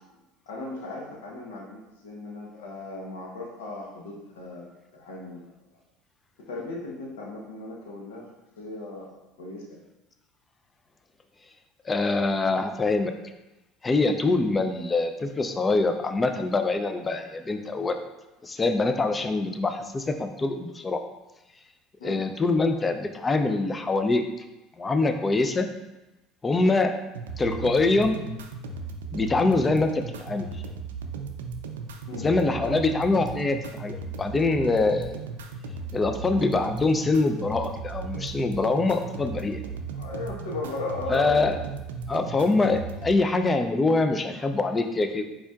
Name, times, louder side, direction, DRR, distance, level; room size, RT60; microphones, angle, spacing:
voice 1, 0.5-4.6 4.9-5.4 6.5-8.3 8.6-9.1 9.4-9.8 22.0-22.2 32.1-32.3 39.9-41.5, left 2 dB, 85° left, -1 dB, 0.9 m, -36 dB
voice 2, 11.9-13.1 13.8-18.0 18.4-21.0 22.0-24.2 24.8-25.7 26.4-26.9 27.4-28.2 29.1-30.5 32.2-35.2 35.9-39.6 41.1-41.6 42.1-45.2, left 3 dB, 25° left, 7 dB, 0.5 m, -24 dB
sound 1, 27.1-43.2, right 4 dB, 90° right, 0.3 m, -36 dB
4.7 x 4.3 x 2.4 m, 1.0 s
hypercardioid pair, 80°, 0 cm